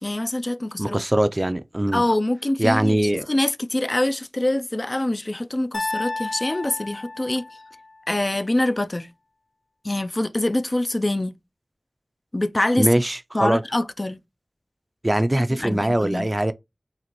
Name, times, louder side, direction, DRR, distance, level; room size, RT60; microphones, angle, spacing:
voice 1, 0.0-1.0 1.9-7.4 8.1-9.1 9.8-11.3 12.3-12.9 13.3-14.2 15.3-16.3, left 1 dB, 40° left, 0.3 m, -24 dB
voice 2, 0.8-2.0 2.6-3.3 12.8-13.6 15.0-16.5, right 1 dB, 30° right, 0.3 m, -21 dB
sound 1, 5.7-7.9, left 2 dB, 80° left, 0.8 m, -32 dB
3.9 x 2.5 x 3.0 m
wide cardioid pair, 45°, 0 cm